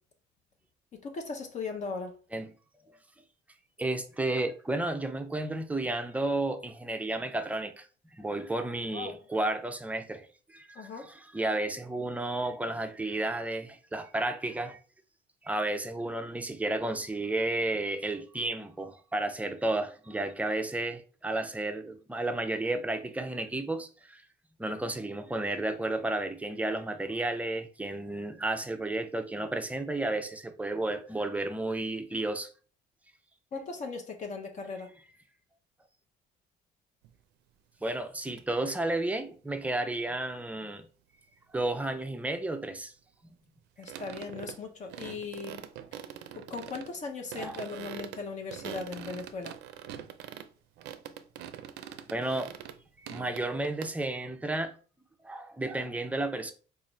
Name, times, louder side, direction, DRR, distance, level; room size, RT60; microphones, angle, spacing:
voice 1, 0.9-2.2 8.9-9.2 10.7-11.1 33.5-34.9 43.8-45.6 45.9-46.0 46.3-49.6, left 4 dB, 45° left, 0.6 m, -38 dB
voice 2, 3.8-7.9 8.1-14.8 15.4-24.2 24.6-32.5 37.8-40.9 41.5-42.9 47.4-47.6 52.1-52.5 53.0-54.7 55.2-56.5, right 2 dB, 10° right, 0.4 m, -32 dB
sound 1, 37.0-37.1 38.4-38.5 43.8-44.6 44.9-46.9 47.3-50.5 50.8-52.8 53.1-53.9, right 10 dB, 85° right, 0.4 m, -43 dB
3.9 x 2.4 x 3.0 m
cardioid pair, 110°, 17 cm